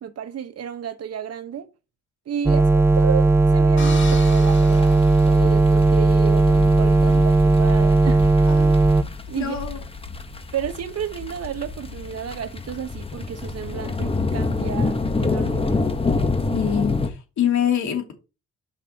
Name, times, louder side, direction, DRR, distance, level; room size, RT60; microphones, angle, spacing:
voice 1, 0.0-1.7 2.3-8.3 9.3-9.6 10.5-16.0, right 9 dB, 55° right, 1.2 m, -32 dB
sound 1, 2.5-9.0, right 2 dB, 10° right, 0.5 m, -16 dB
sound 2, 3.8-6.0, left 5 dB, 40° left, 1.6 m, -38 dB
sound 3, 3.9-17.1, left 3 dB, 20° left, 1.1 m, -28 dB
voice 2, 8.5-8.8 9.3-9.8 16.5-18.1, left 9 dB, 70° left, 2.8 m, -25 dB
8.4 x 5.7 x 2.9 m
cardioid pair, 90°, 30 cm